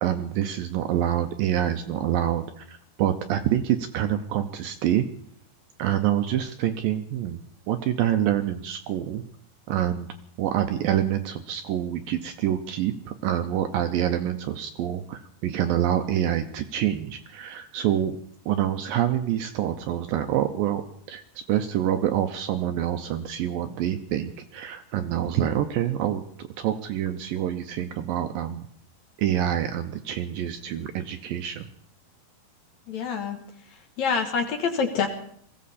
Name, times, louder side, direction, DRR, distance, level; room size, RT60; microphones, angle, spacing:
voice 1, 0.0-5.1 5.8-7.4 7.7-9.2 9.7-10.1 10.4-18.2 18.5-20.8 21.1-21.2 21.5-28.7 29.2-31.7, right 11 dB, 80° right, 7 dB, 2.1 m, -26 dB
voice 2, 32.9-33.4 34.0-35.1, left 6 dB, 60° left, 5 dB, 2.0 m, -26 dB
21.5 x 15.5 x 4.2 m, 0.63 s
omnidirectional pair, 4.8 m